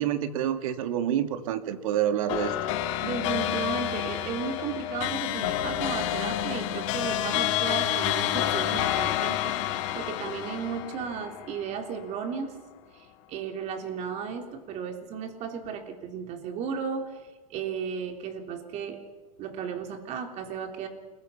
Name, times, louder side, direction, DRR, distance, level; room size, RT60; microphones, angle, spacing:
voice 1, 0.0-2.5, right 10 dB, 70° right, 9 dB, 2.2 m, -27 dB
sound 1, 2.3-11.9, left 12 dB, 55° left, 2.7 m, -29 dB
voice 2, 3.0-12.5 12.9-17.2 17.5-19.0 19.4-20.9, right 6 dB, 40° right, 5 dB, 3.5 m, -34 dB
29.5 x 21.5 x 5.7 m, 1.2 s
supercardioid pair, 135°, 18 cm